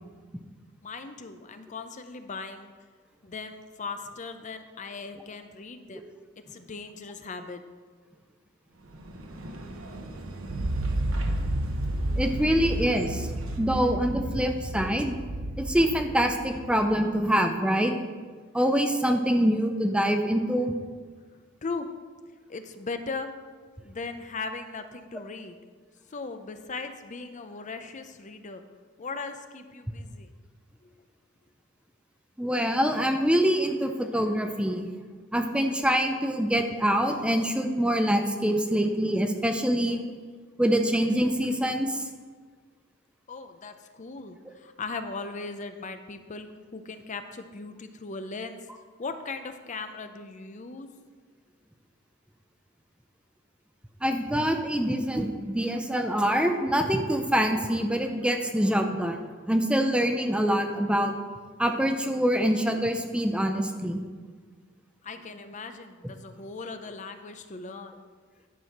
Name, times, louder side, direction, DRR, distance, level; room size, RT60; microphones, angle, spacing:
voice 1, 0.8-2.7 3.2-6.0 6.5-7.6 21.3-21.9 22.5-23.3 23.8-25.6 26.1-28.6 29.0-30.3 30.8-30.9 43.3-48.6 49.0-50.9 65.0-67.9, left 4 dB, 35° left, 8 dB, 0.6 m, -38 dB
sound 1, 8.7-13.8, right 1 dB, 90° right, 1.0 m, -42 dB
sound 2, 10.5-17.0, right 1 dB, 60° right, 0.7 m, -31 dB
voice 2, 12.2-13.3 13.6-15.1 15.6-17.9 18.5-20.8 32.4-34.9 35.3-40.0 40.6-42.0 54.0-61.1 61.6-64.0, equal, 5° right, 5 dB, 0.6 m, -25 dB
11.0 x 4.8 x 5.8 m, 1.5 s
head